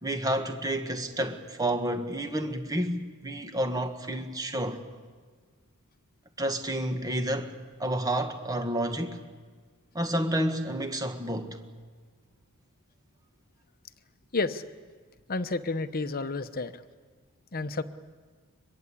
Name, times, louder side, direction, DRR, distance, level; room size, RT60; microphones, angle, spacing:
voice 1, 0.0-4.8 6.4-7.5 7.8-9.2 9.9-11.6, right 1 dB, 15° right, 1.6 m, -30 dB
voice 2, 15.3-16.8 17.5-17.8, left 3 dB, 45° left, 1.0 m, -30 dB
23.5 x 21.5 x 8.5 m
head